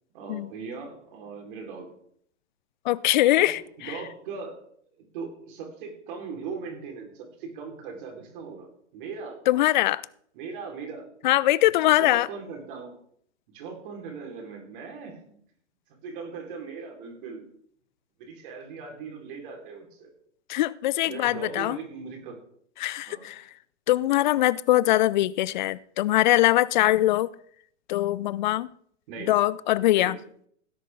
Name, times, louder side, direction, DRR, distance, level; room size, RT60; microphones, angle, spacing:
voice 1, 0.1-1.9 3.4-4.6 5.1-8.7 8.9-9.4 10.3-11.1 11.9-12.9 13.5-15.4 16.0-17.4 18.2-20.1 21.0-22.4 23.1-23.3 29.1-29.3 29.9-30.2, right 5 dB, 45° right, 4.8 m, -39 dB
voice 2, 2.9-4.0 9.5-10.0 11.2-12.3 20.5-21.8 22.8-23.4 23.9-27.3 27.9-28.7 29.3-30.2, left 15 dB, 40° left, 0.6 m, -22 dB
17.0 x 10.0 x 3.9 m
figure-of-eight pair, 120°, 36 cm